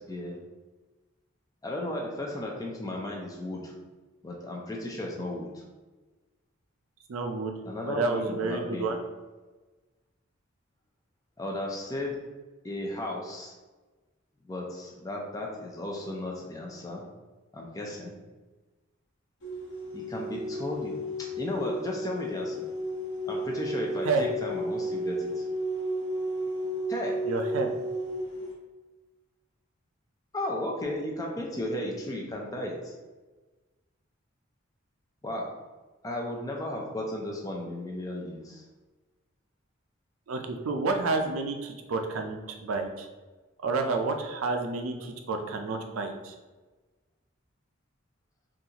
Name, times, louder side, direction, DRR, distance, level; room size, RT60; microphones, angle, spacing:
voice 1, 1.6-3.8 4.2-5.6 7.7-8.9 11.4-12.2 12.6-13.5 14.5-17.0 17.5-18.1 19.9-20.9 21.2-22.7 23.3-25.5 26.9-27.2 30.3-32.9 35.2-35.5 36.0-38.6, left 1 dB, 15° left, -1 dB, 0.4 m, -35 dB
voice 2, 7.1-9.0 24.0-24.3 27.2-27.7 40.3-43.1 43.6-46.3, right 3 dB, 85° right, 5 dB, 0.5 m, -30 dB
sound 1, 19.4-28.5, equal, 60° left, 1.1 m, -33 dB
3.9 x 2.4 x 2.8 m, 1.2 s
head